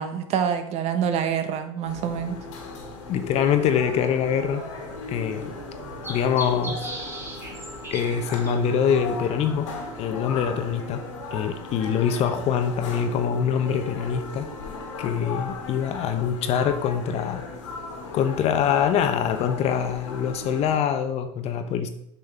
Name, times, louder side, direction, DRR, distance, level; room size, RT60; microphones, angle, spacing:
voice 1, 0.0-2.4, right 7 dB, 45° right, 8 dB, 1.1 m, -26 dB
sound 1, 1.8-20.8, left 3 dB, 75° left, 2.1 m, -37 dB
voice 2, 3.1-4.6 5.1-5.5 6.1-6.8 7.9-9.7 10.0-11.0 11.3-14.5 15.0-17.5 18.1-21.9, left 8 dB, 40° left, 8 dB, 1.0 m, -24 dB
sound 2, 4.1-10.1, right 2 dB, 15° right, 1.9 m, -41 dB
8.4 x 6.2 x 3.5 m, 0.75 s
hypercardioid pair, 90°, 16 cm